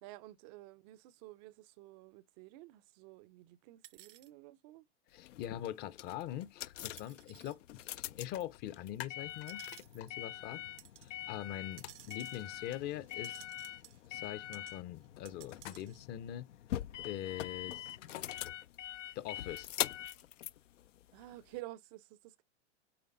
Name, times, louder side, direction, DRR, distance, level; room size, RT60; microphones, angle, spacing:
voice 1, 0.0-4.9 10.4-10.6 21.1-22.4, right 17 dB, 35° right, 0.4 m, -52 dB
sound 1, 3.8-4.3 5.4-5.5 7.0-7.6 8.3-8.6 9.3-10.2 10.8-11.1 11.7-14.3 14.5-14.8 15.0-16.0, right 14 dB, 75° right, 0.7 m, -57 dB
voice 2, 5.1-9.6 9.9-10.6 11.0-13.4 14.1-16.5 17.0-18.0 19.1-19.7, left 12 dB, 30° left, 0.5 m, -43 dB
sound 2, 5.2-21.6, left 13 dB, 90° left, 0.5 m, -43 dB
sound 3, 7.9-8.0 8.3-10.1 11.8-12.0 15.5-16.1 17.8-18.3 19.6-20.5, left 13 dB, 55° left, 1.0 m, -49 dB
8.6 x 3.2 x 3.7 m
hypercardioid pair, 125°, 36 cm